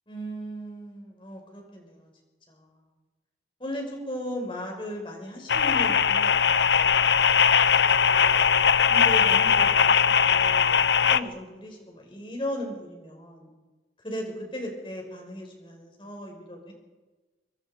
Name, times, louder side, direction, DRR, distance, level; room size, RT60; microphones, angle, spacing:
voice 1, 0.1-2.1 2.5-2.8 3.6-8.5 8.9-13.5 14.0-16.7, equal, 30° left, 1 dB, 5.6 m, -37 dB
sound 1, 5.5-11.2, left 7 dB, 75° left, 0.7 m, -20 dB
25.0 x 23.5 x 5.2 m, 1.2 s
head